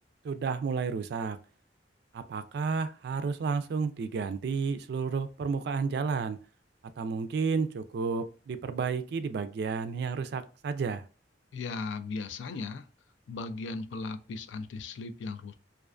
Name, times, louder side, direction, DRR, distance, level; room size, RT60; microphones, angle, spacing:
voice 1, 0.2-1.4 2.1-6.4 7.0-11.0, right 5 dB, 60° right, 0.3 m, -31 dB
voice 2, 11.5-12.9 13.3-15.5, left 3 dB, 85° left, 0.3 m, -37 dB
2.4 x 2.3 x 2.4 m
head